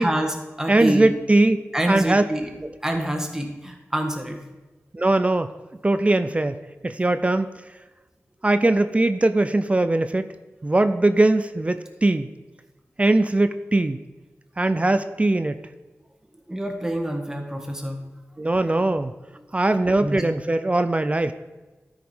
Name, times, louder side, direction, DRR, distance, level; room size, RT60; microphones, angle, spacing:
voice 1, 0.0-1.1 1.7-2.5 2.8-4.4 16.5-18.0 20.0-20.2, right 1 dB, 10° right, 2 dB, 1.6 m, -26 dB
voice 2, 0.7-2.2 4.9-5.5 5.8-6.6 6.8-7.5 8.4-10.2 10.6-12.3 13.0-14.0 14.6-15.6 18.4-19.1 19.5-21.3, right 2 dB, 25° right, 11 dB, 0.5 m, -20 dB
12.5 x 4.9 x 5.5 m, 1.2 s
wide cardioid pair, 70°, 5 cm